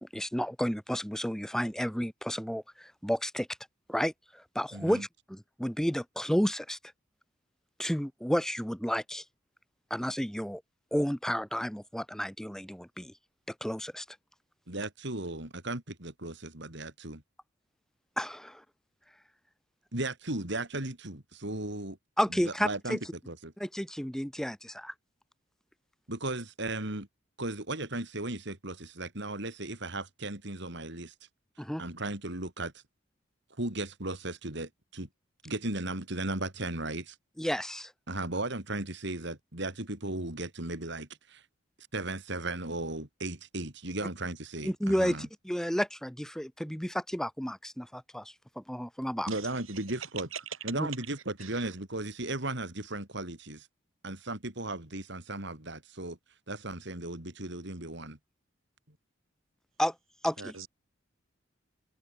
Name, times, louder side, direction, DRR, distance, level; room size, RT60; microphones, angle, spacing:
voice 1, 0.0-3.5 3.9-4.1 4.5-6.8 7.8-9.2 9.9-10.6 10.9-13.1 13.6-14.0 18.2-18.6 22.2-23.0 23.6-24.9 31.6-31.8 37.4-37.9 44.6-49.3 50.8-50.9 59.8-59.9 60.2-60.5, equal, ahead, 1.4 m, -31 dB
voice 2, 4.7-5.0 14.7-17.2 19.9-22.0 22.3-23.0 23.3-23.5 26.1-27.1 27.4-31.1 31.8-32.8 33.6-35.1 35.4-37.2 38.1-41.5 41.9-45.3 49.3-50.3 50.6-53.7 54.0-56.2 56.5-58.2, right 2 dB, 60° right, 3.4 m, -36 dB
voice 3, 49.3-49.5 50.3-50.4 51.4-51.5 60.4-60.7, right 6 dB, 80° right, 5.9 m, -41 dB
head